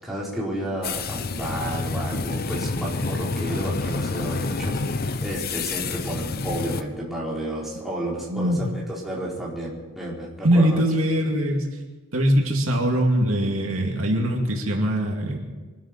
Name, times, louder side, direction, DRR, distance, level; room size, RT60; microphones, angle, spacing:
voice 1, 0.0-10.8, right 1 dB, ahead, -7 dB, 4.3 m, -31 dB
sound 1, 0.8-6.8, left 3 dB, 45° left, 0.8 m, -28 dB
voice 2, 8.3-8.7 10.4-11.7 12.1-15.4, equal, 75° right, 1 dB, 2.4 m, -22 dB
24.5 x 13.0 x 4.5 m, 1.3 s
head